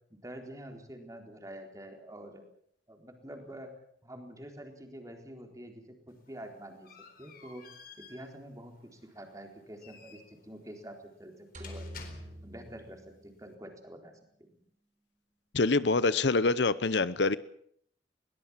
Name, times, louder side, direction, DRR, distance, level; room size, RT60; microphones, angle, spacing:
voice 1, 0.1-2.4 2.9-3.8 4.0-6.9 7.2-7.7 8.0-11.9 12.4-14.1 14.4-14.6, right 1 dB, 20° right, 4 dB, 4.1 m, -47 dB
sound 1, 6.1-12.7, left 5 dB, 55° left, 4.2 m, -54 dB
sound 2, 11.5-13.8, equal, 45° right, 3.9 m, -46 dB
voice 2, 15.5-17.4, left 3 dB, 70° left, 17 dB, 0.8 m, -25 dB
22.0 x 19.0 x 7.4 m, 0.65 s
head